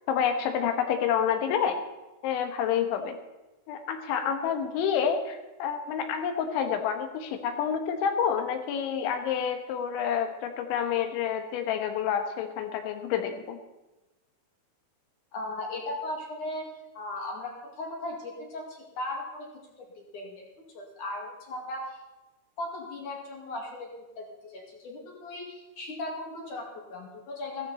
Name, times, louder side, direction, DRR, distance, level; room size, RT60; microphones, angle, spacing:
voice 1, 0.1-1.8 2.2-3.2 3.7-13.6, left 8 dB, 75° left, 6 dB, 3.5 m, -28 dB
voice 2, 15.3-19.5 19.8-20.5 20.7-22.0 22.6-27.7, left 2 dB, 50° left, 0 dB, 3.1 m, -37 dB
15.0 x 14.5 x 4.2 m, 1.1 s
omnidirectional pair, 5.6 m